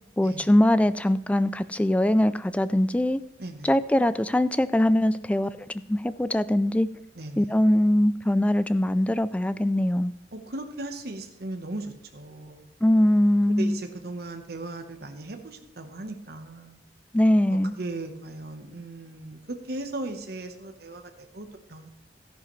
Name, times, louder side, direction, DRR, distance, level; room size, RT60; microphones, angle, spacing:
voice 1, 0.2-3.2 3.6-5.5 5.9-6.9 7.4-10.1 12.8-13.8 17.1-17.8, left 1 dB, 10° left, 14 dB, 0.3 m, -22 dB
voice 2, 3.4-3.8 7.1-7.5 10.3-12.7 13.5-16.8 17.5-21.9, right 2 dB, 60° right, 5 dB, 1.1 m, -37 dB
13.5 x 11.0 x 3.2 m, 0.80 s
head